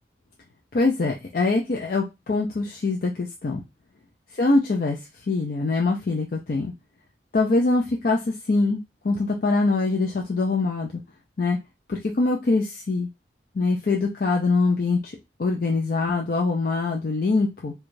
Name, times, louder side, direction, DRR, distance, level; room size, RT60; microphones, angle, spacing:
voice 1, 0.7-3.6 4.3-5.0 5.3-6.7 7.3-11.0 11.4-11.6 11.9-13.1 13.5-15.1 15.4-17.7, left 3 dB, 55° left, 0 dB, 0.4 m, -23 dB
4.6 x 2.3 x 2.6 m, 0.24 s
head